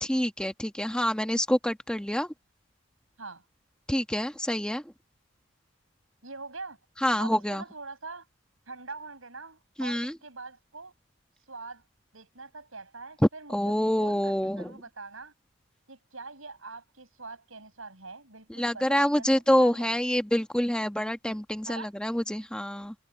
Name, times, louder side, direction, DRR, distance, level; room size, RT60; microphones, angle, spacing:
voice 1, 0.0-2.3 3.9-4.8 7.0-7.6 9.8-10.2 13.5-14.7 18.6-22.9, equal, 5° left, 1.1 m, -27 dB
voice 2, 6.2-6.8 7.2-8.3 8.7-10.9 11.5-11.8 12.1-15.3 15.9-19.9 21.7-21.9, right 3 dB, 75° right, 7.9 m, -43 dB
head